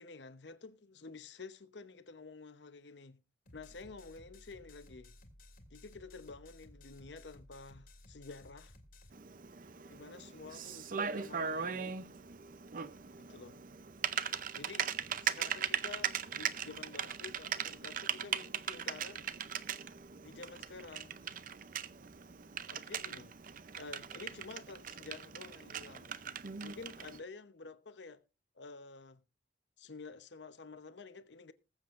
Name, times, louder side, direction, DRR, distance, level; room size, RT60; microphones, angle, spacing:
voice 1, 0.0-3.2 3.5-5.1 5.7-8.7 9.9-12.0 13.2-13.6 14.5-14.9 15.2-19.3 20.2-21.2 22.7-23.3 23.8-26.1 26.6-28.2 28.5-29.2 29.8-31.5, left 4 dB, 75° left, 0.9 m, -50 dB
sound 1, 3.5-9.1, left 1 dB, 55° left, 1.9 m, -57 dB
Typing, 9.1-27.2, right 8 dB, 50° right, 0.6 m, -39 dB
20.5 x 7.5 x 2.5 m
head